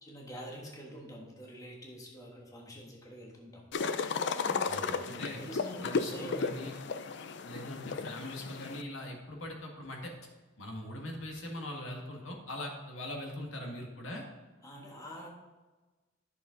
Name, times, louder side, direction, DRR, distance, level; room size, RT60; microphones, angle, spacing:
voice 1, 0.0-3.6 4.4-6.5 7.5-8.0 14.6-15.3, equal, 15° left, -1 dB, 1.4 m, -46 dB
sound 1, 3.7-8.8, left 5 dB, 60° left, 0.5 m, -34 dB
voice 2, 4.7-5.4 5.8-6.7 7.4-10.1 10.6-14.2, left 1 dB, 80° left, 0 dB, 1.8 m, -41 dB
10.5 x 6.6 x 3.9 m, 1.2 s
head